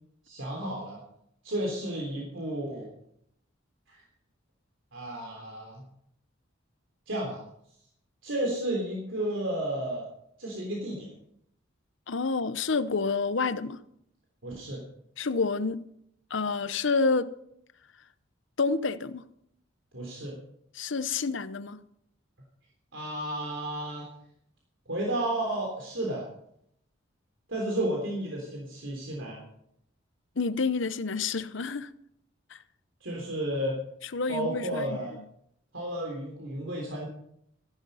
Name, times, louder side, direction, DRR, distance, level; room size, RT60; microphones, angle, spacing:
voice 1, 0.3-1.0 1.4-2.9 3.9-4.0 4.9-5.8 7.1-7.4 8.2-10.1 10.4-11.1 14.4-14.8 19.9-20.4 22.9-24.1 24.9-26.3 27.5-29.4 33.0-33.8 34.3-35.2 35.7-37.1, right 1 dB, 70° right, 3.4 m, -32 dB
voice 2, 12.1-13.8 15.2-15.8 16.3-17.3 18.6-19.2 20.7-21.8 30.4-31.9 32.5-32.6 34.1-35.0, left 4 dB, 65° left, 0.8 m, -28 dB
15.0 x 12.0 x 5.6 m
head